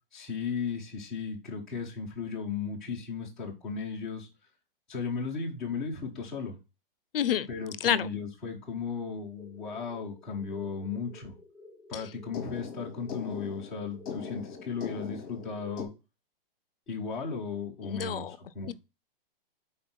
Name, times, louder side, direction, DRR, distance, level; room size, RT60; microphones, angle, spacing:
voice 1, 0.1-4.3 4.9-6.6 7.5-11.3 11.9-15.9 16.9-18.7, left 5 dB, ahead, 0.5 m, -36 dB
voice 2, 7.1-7.5 7.8-8.1 11.9-12.0 17.8-18.4 18.7-18.8, left 10 dB, 75° left, 0.6 m, -28 dB
sound 1, 9.4-15.8, left 6 dB, 15° left, 1.0 m, -43 dB
5.3 x 4.2 x 5.8 m
hypercardioid pair, 180°, 29 cm